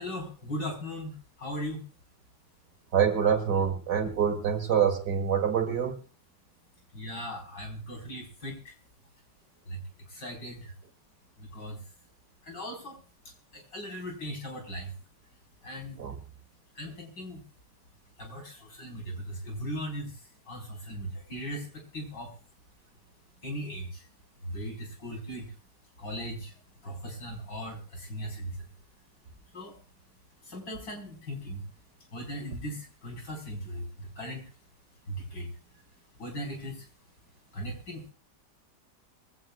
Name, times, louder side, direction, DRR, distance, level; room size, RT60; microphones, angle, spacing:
voice 1, 0.0-1.9 6.9-8.7 9.7-9.8 10.1-10.7 11.4-11.8 12.4-13.0 13.5-14.9 15.6-16.0 16.7-17.4 18.2-20.2 20.5-22.3 23.4-24.0 24.4-25.5 26.0-26.5 26.8-28.7 29.5-29.8 30.4-31.7 32.1-34.4 35.1-35.5 36.2-36.8 37.5-38.1, equal, 75° left, 5.1 m, -38 dB
voice 2, 2.9-6.0 16.0-16.2, right 8 dB, 65° right, 2.4 m, -26 dB
22.5 x 16.5 x 2.3 m
omnidirectional pair, 1.9 m